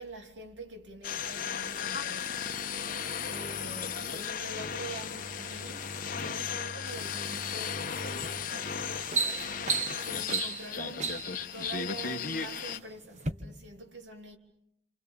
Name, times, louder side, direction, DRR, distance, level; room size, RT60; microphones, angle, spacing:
voice 1, 0.0-2.9 3.2-9.7 9.9-11.2 11.5-14.4, right 2 dB, 90° right, 3.2 m, -45 dB
sound 1, 1.0-12.8, left 7 dB, 50° left, 1.3 m, -35 dB
Bowed string instrument, 4.8-9.6, left 1 dB, ahead, 2.6 m, -48 dB
sound 2, 8.2-8.4 8.8-11.4 12.2-12.8 13.2-13.3, right 4 dB, 40° right, 1.4 m, -32 dB
29.5 x 27.5 x 7.0 m
head